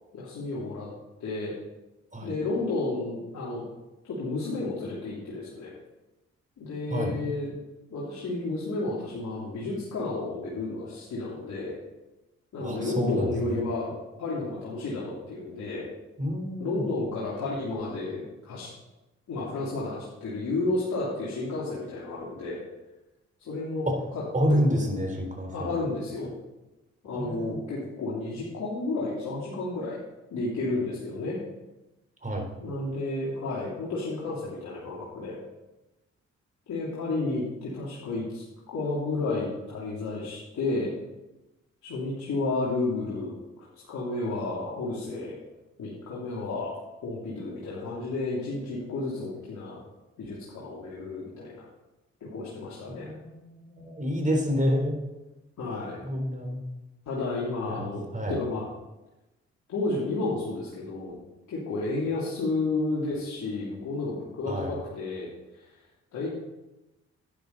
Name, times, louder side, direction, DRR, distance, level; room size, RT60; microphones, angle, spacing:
voice 1, 0.1-0.9 1.2-1.5 2.2-3.6 4.0-5.7 6.6-7.5 7.9-11.7 12.5-15.8 16.6-18.7 19.3-22.6 23.4-24.2 24.5-24.6 25.5-26.3 27.0-30.0 30.3-31.4 32.6-35.4 36.7-40.9 41.8-45.4 45.8-46.7 47.0-49.8 50.2-51.6 52.2-53.1 55.6-56.0 57.1-58.6 59.7-61.2 61.5-65.3 65.5-65.7 66.1-66.3, left 2 dB, 70° left, -7 dB, 3.2 m, -32 dB
voice 2, 12.6-13.6 16.2-16.9 23.9-24.0 24.3-25.7 27.1-27.6 32.2-32.5 52.9-55.0 56.0-56.6 57.7-57.9 58.1-58.4 64.5-64.7, equal, 25° right, 2 dB, 4.0 m, -28 dB
11.5 x 10.0 x 4.1 m, 1.0 s
supercardioid pair, 45°, 30 cm